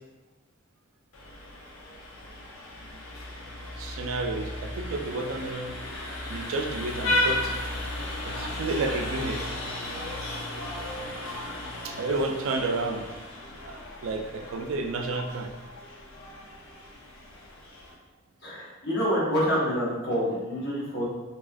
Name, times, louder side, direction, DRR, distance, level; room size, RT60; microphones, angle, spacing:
Vehicle horn car horn honking, 1.1-17.9, left 1 dB, 85° left, 0.5 m, -35 dB
voice 1, 3.8-5.7 6.3-7.6 7.9-9.4 11.8-13.0 13.7-15.5, right 3 dB, 80° right, 4 dB, 0.3 m, -31 dB
voice 2, 18.4-21.1, equal, 55° left, -6 dB, 0.9 m, -27 dB
2.7 x 2.4 x 2.5 m, 1.1 s
head